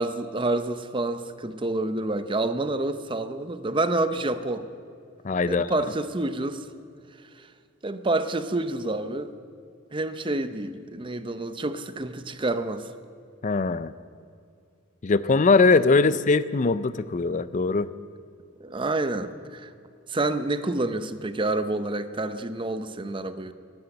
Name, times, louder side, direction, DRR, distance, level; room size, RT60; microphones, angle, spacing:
voice 1, 0.0-4.7 5.5-6.7 7.8-9.3 9.9-12.9 16.0-16.2 18.6-19.7 20.1-23.5, right 2 dB, 25° right, 11 dB, 0.7 m, -28 dB
voice 2, 5.2-5.9 13.4-13.9 15.0-17.9, left 3 dB, 35° left, 16 dB, 0.4 m, -21 dB
18.0 x 10.0 x 7.8 m, 2.4 s
head